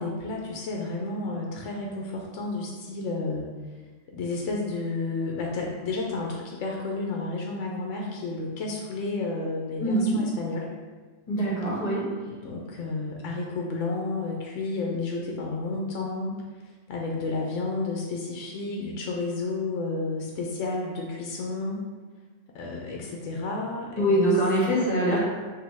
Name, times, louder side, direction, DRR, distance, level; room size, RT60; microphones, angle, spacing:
voice 1, 0.0-3.5 4.1-10.7 12.2-16.4 16.9-21.8 22.5-24.4 24.7-24.9, left 3 dB, 80° left, -1 dB, 0.9 m, -31 dB
voice 2, 9.8-10.2 11.3-12.0 24.0-25.2, right 1 dB, 35° left, -6 dB, 1.3 m, -23 dB
5.0 x 2.7 x 3.4 m, 1.4 s
omnidirectional pair, 1.3 m